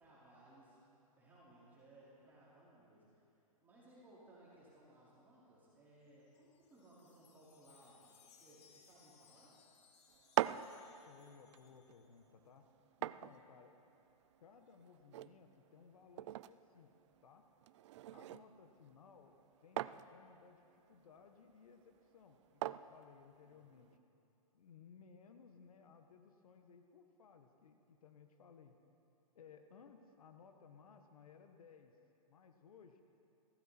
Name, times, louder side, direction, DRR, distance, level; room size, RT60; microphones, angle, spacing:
voice 1, 0.0-3.3 3.6-9.6 13.1-13.5 17.9-18.5 23.4-23.9, right 1 dB, 10° right, -10 dB, 4.7 m, -63 dB
Wind chime, 6.1-12.3, left 7 dB, 50° left, 1.5 m, -68 dB
sound 1, 10.1-24.0, right 13 dB, 50° right, 0.4 m, -45 dB
voice 2, 11.0-12.7 13.0-13.8 14.4-16.9 17.2-17.4 18.1-23.9 24.5-28.7 29.3-32.0 32.3-33.0, left 6 dB, 75° left, 6 dB, 1.3 m, -61 dB
20.0 x 15.5 x 4.4 m, 2.8 s
hypercardioid pair, 130°, 19 cm